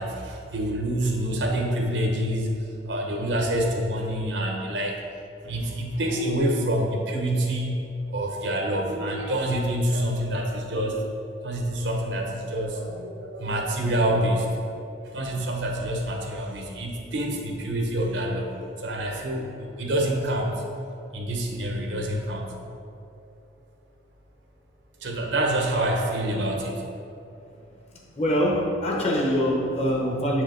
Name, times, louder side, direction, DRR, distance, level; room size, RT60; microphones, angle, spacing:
voice 1, 0.0-5.0 5.4-7.8 8.1-11.0 11.4-14.8 15.0-20.6 21.1-22.5 25.0-26.9, right 1 dB, 80° right, 1 dB, 1.0 m, -27 dB
voice 2, 28.2-30.4, equal, 35° left, -1 dB, 0.9 m, -24 dB
7.4 x 4.9 x 3.9 m, 2.7 s
head